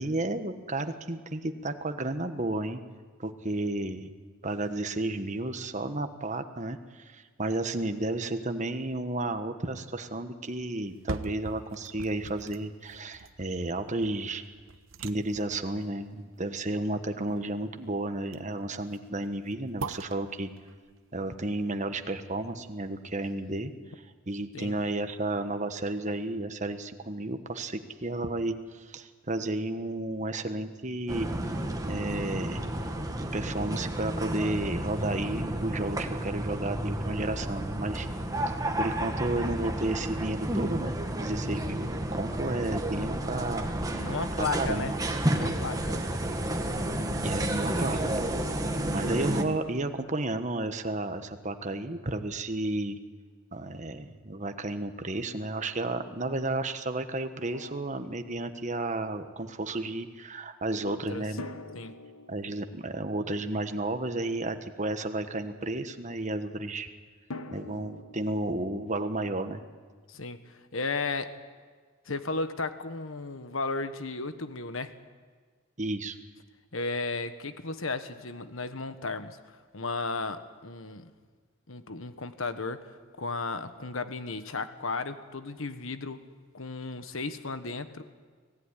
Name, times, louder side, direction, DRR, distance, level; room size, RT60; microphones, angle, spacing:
voice 1, 0.0-2.8 3.2-4.1 4.4-14.4 15.0-20.5 21.1-23.7 24.3-31.3 31.9-32.7 33.3-38.1 38.8-40.9 41.2-43.7 44.0-44.1 44.4-44.9 47.2-48.3 48.9-53.0 53.5-61.4 62.3-66.9 67.5-69.6 75.8-76.2, right 2 dB, 35° right, 8 dB, 1.3 m, -32 dB
sound 1, 10.8-22.8 23.3-23.4, right 3 dB, 65° right, 0.9 m, -44 dB
sound 2, 31.1-49.4, right 1 dB, 15° right, 1.7 m, -31 dB
voice 2, 43.9-44.9 45.3-46.0 60.8-61.2 61.7-61.9 70.1-71.3 72.0-74.9 76.7-81.1 81.7-86.2 86.5-88.0, left 3 dB, 70° left, 10 dB, 1.4 m, -34 dB
Drum, 57.5-58.9 61.4-64.4 67.3-70.2, left 2 dB, 90° left, 1.3 m, -47 dB
24.5 x 17.5 x 9.8 m, 1.5 s
head